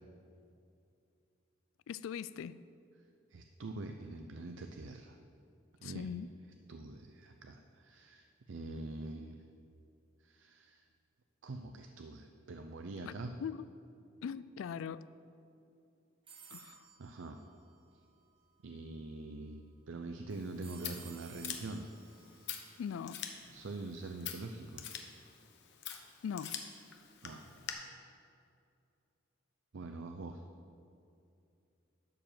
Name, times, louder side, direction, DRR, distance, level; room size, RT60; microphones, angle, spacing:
voice 1, 1.9-2.6 5.8-6.3 13.0-13.1 13.4-13.7 14.2-15.1 16.5-16.9 22.8-23.2 26.2-26.6, left 7 dB, 80° left, 0.3 m, -40 dB
voice 2, 3.3-5.2 5.8-6.1 6.7-9.4 10.2-10.8 11.4-13.3 17.0-17.4 18.6-21.8 23.5-24.8 27.2-27.4 29.7-30.4, right 2 dB, 65° right, 0.5 m, -44 dB
sound 1, 16.3-18.3 20.6-23.7, right 6 dB, 25° right, 1.1 m, -57 dB
Scissors, 20.3-27.7, left 8 dB, 60° left, 1.0 m, -46 dB
11.5 x 5.0 x 7.4 m
head